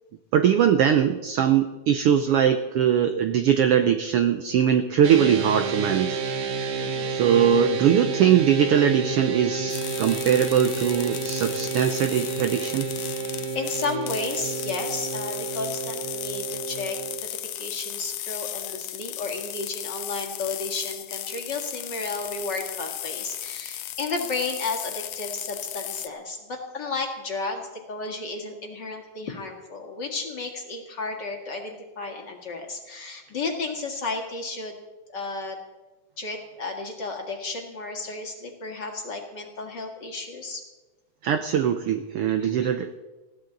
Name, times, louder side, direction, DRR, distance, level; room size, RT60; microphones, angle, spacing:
voice 1, 0.3-6.2 7.1-12.9 41.2-43.0, right 9 dB, 85° right, 8 dB, 1.2 m, -21 dB
sound 1, 5.0-17.2, right 4 dB, 65° right, 2.5 m, -31 dB
voice 2, 6.8-7.2 12.7-12.8 13.5-34.8 35.1-35.6 36.2-40.6 42.4-42.7, left 3 dB, 40° left, 2 dB, 2.1 m, -33 dB
sound 2, 9.7-26.1, left 13 dB, 80° left, 1.3 m, -35 dB
20.5 x 16.0 x 4.0 m, 1.2 s
omnidirectional pair, 3.5 m